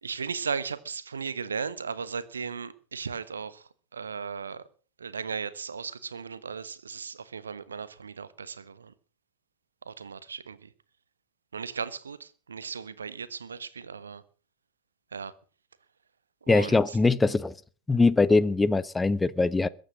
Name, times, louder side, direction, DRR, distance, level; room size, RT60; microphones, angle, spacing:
voice 1, 0.0-4.6 5.0-8.9 9.8-10.7 11.5-14.2 15.1-15.3 16.4-17.0, right 6 dB, 70° right, 1.3 m, -36 dB
voice 2, 16.5-17.5 17.9-19.7, left 3 dB, 10° left, 0.8 m, -22 dB
22.0 x 9.2 x 6.3 m
figure-of-eight pair, 90°, 0 cm